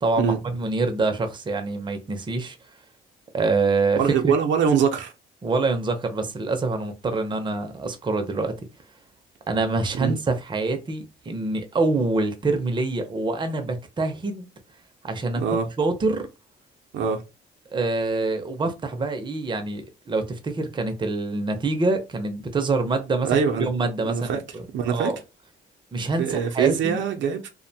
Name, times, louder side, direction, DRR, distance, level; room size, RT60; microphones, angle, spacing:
voice 1, 0.0-2.6 3.3-4.3 5.4-8.6 9.5-14.5 15.0-16.3 17.7-25.2 25.9-27.0, right 3 dB, 25° right, 0.5 m, -26 dB
voice 2, 4.0-5.1 9.9-10.2 15.4-15.7 16.9-17.2 23.2-23.7 24.0-24.4 24.7-25.1 26.2-27.5, right 7 dB, 70° right, 0.5 m, -23 dB
2.5 x 2.1 x 2.6 m
cardioid pair, 90°, 20 cm